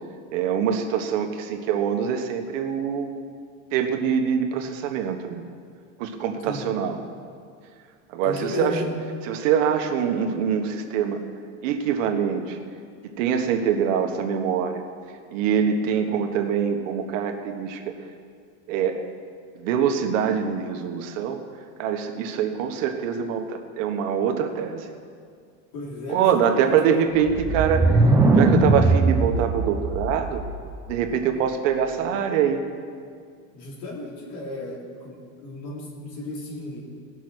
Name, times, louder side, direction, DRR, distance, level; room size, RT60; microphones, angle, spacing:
voice 1, 0.3-3.2 3.7-5.4 6.0-7.0 8.1-8.9 9.2-11.2 11.6-12.6 13.0-14.8 15.3-17.9 18.7-19.0 19.5-21.4 21.8-24.9 26.1-30.4 30.9-32.6, right 7 dB, 85° right, 5 dB, 1.3 m, -24 dB
voice 2, 8.2-8.9 25.7-26.7 33.5-35.2 35.4-36.8, left 2 dB, 60° left, -2 dB, 3.3 m, -34 dB
sound 1, 27.3-31.0, right 3 dB, 10° right, 0.4 m, -20 dB
18.0 x 6.2 x 6.1 m, 2.2 s
cardioid pair, 165°, 38 cm